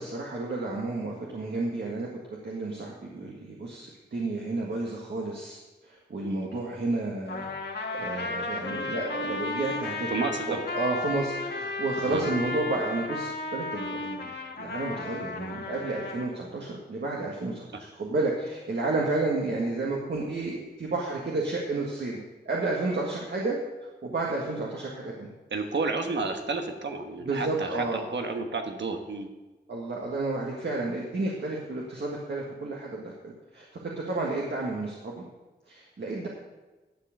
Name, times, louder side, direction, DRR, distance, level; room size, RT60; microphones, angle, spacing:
voice 1, 0.0-2.1 2.4-10.1 10.5-14.3 14.6-22.2 22.5-23.6 24.0-25.3 27.2-28.0 29.7-35.2 35.7-36.3, right 2 dB, 75° right, -3 dB, 1.7 m, -31 dB
Trumpet, 7.3-16.3, left 2 dB, 70° left, 1.6 m, -34 dB
voice 2, 10.1-10.6 12.0-12.3 25.5-29.3, right 3 dB, 90° right, 5 dB, 1.3 m, -31 dB
11.0 x 7.3 x 6.6 m, 1.2 s
wide cardioid pair, 110°, 18 cm